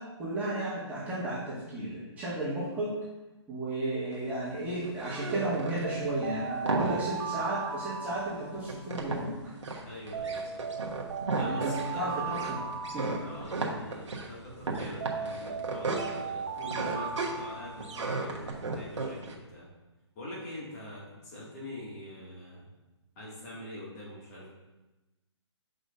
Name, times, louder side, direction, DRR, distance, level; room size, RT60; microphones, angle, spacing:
voice 1, 0.0-2.9 3.5-9.3 11.4-12.2 12.5-12.7 12.9-13.2, right 2 dB, 10° right, -10 dB, 1.7 m, -33 dB
sound 1, 4.1-19.3, right 3 dB, 80° right, 1.2 m, -35 dB
sound 2, 5.8-9.0 10.1-13.9 15.0-18.2, right 6 dB, 50° right, 0.7 m, -37 dB
voice 2, 9.8-10.6 11.3-12.6 13.2-19.7 20.1-22.7 23.2-24.5, left 1 dB, 35° left, -5 dB, 2.2 m, -44 dB
7.7 x 5.2 x 2.6 m, 1.1 s
hypercardioid pair, 145°, 15 cm